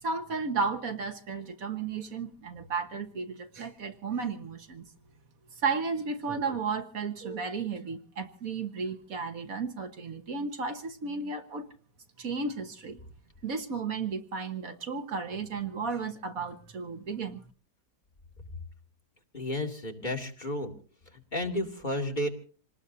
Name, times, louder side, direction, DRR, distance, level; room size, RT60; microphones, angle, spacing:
voice 1, 0.0-4.8 5.6-11.6 12.2-13.0 13.4-17.4, right 4 dB, 65° right, 8 dB, 1.6 m, -33 dB
voice 2, 19.3-20.7 21.1-22.3, left 1 dB, 30° left, 2 dB, 2.5 m, -32 dB
26.5 x 19.5 x 2.7 m, 0.39 s
omnidirectional pair, 1.7 m